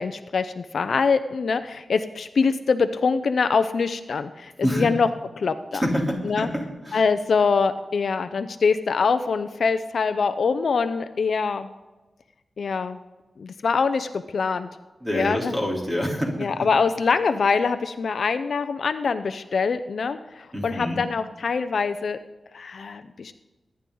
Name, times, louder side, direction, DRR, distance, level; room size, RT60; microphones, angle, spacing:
voice 1, 0.0-5.1 5.4-5.8 6.2-6.5 6.9-11.7 12.6-13.0 13.4-14.7 15.1-15.6 16.4-22.2 22.5-23.3, left 5 dB, 65° left, 10 dB, 0.6 m, -24 dB
voice 2, 4.6-4.9 5.7-7.0 15.0-16.7 20.5-21.0, equal, 15° right, -2 dB, 3.6 m, -27 dB
23.0 x 10.5 x 3.9 m, 1.2 s
wide cardioid pair, 130°, 0 cm